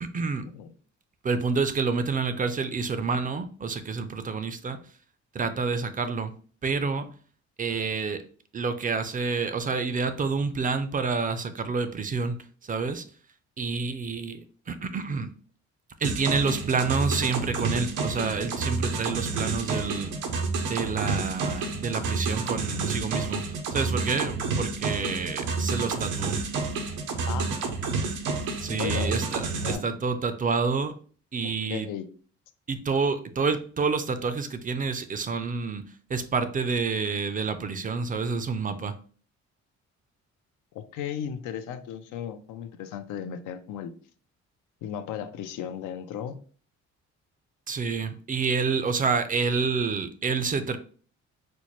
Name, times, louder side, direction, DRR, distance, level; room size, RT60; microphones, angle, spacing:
voice 1, 0.0-0.5 1.2-4.8 5.3-6.3 6.6-7.1 7.6-8.2 8.5-12.4 12.7-13.0 13.6-15.3 16.0-20.1 20.7-23.4 23.7-26.4 28.6-29.4 29.7-30.9 31.3-31.9 32.7-35.8 36.1-38.9 47.7-50.8, right 4 dB, 30° right, 10 dB, 0.4 m, -28 dB
sound 1, 16.0-29.8, right 4 dB, 90° right, 0.7 m, -29 dB
voice 2, 27.3-27.6 28.7-30.0 31.4-32.1 40.7-43.9 44.8-46.4, left 9 dB, 85° left, 10 dB, 0.5 m, -36 dB
4.2 x 2.1 x 3.0 m, 0.43 s
cardioid pair, 90°, 30 cm